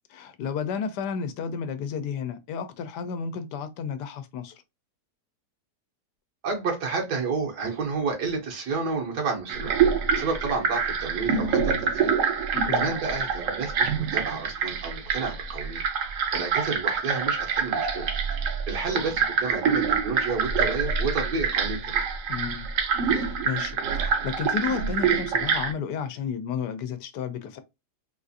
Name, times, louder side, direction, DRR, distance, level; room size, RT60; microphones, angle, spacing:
voice 1, 0.1-4.6 12.5-12.9 22.3-22.7 23.0-27.6, left 6 dB, 90° left, 1.2 m, -32 dB
voice 2, 6.4-9.8 10.1-12.1 12.4-15.8 16.3-18.1 18.4-22.0, right 4 dB, 85° right, 1.6 m, -30 dB
sound 1, 9.5-25.7, right 6 dB, 60° right, 0.9 m, -26 dB
3.6 x 2.5 x 2.6 m
omnidirectional pair, 1.7 m